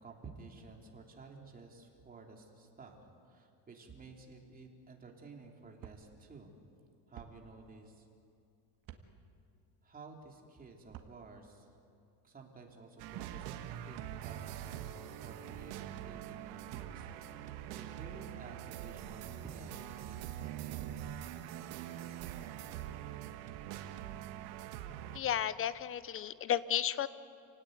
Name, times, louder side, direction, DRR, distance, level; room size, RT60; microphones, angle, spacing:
voice 1, 0.0-3.0 3.3-6.5 7.1-8.1 9.8-11.7 12.2-21.5, right 3 dB, 20° right, 1 dB, 3.2 m, -53 dB
sound 1, 5.8-6.0 7.1-7.3 8.8-9.0 10.8-11.1, right 11 dB, 45° right, 1.8 m, -50 dB
sound 2, 13.0-25.2, right 11 dB, 80° right, 1.7 m, -44 dB
voice 2, 25.1-27.1, left 10 dB, 30° left, 16 dB, 0.7 m, -33 dB
28.5 x 17.5 x 9.3 m, 2.5 s
cardioid pair, 145°, 47 cm